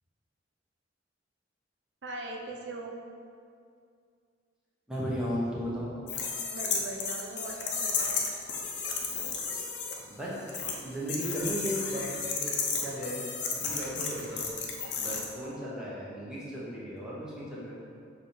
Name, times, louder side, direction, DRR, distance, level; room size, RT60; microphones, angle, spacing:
voice 1, 2.0-3.0 6.5-8.2, right 2 dB, 80° right, 0 dB, 0.7 m, -40 dB
voice 2, 4.9-5.9 10.1-10.5 10.7-12.5 12.8-13.3 13.6-14.6 15.0-17.8, equal, 5° right, -8 dB, 1.2 m, -35 dB
sound 1, 6.1-9.9 10.5-10.7 11.1-15.2, left 5 dB, 70° left, 0.8 m, -33 dB
6.5 x 3.5 x 4.4 m, 2.3 s
head